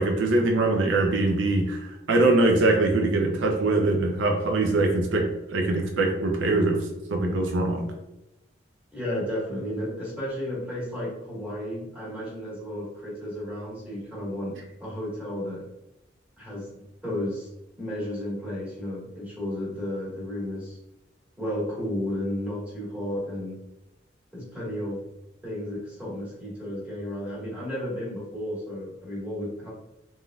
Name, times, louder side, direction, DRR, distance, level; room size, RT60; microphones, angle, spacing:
voice 1, 0.0-1.8 2.1-6.8 7.1-7.9, right 2 dB, 85° right, 2 dB, 0.5 m, -22 dB
voice 2, 8.9-15.7 16.4-17.5 17.8-20.8 21.4-23.6 24.3-25.0 25.4-29.7, left 1 dB, 10° right, -9 dB, 1.3 m, -33 dB
3.4 x 2.6 x 2.3 m, 0.95 s
head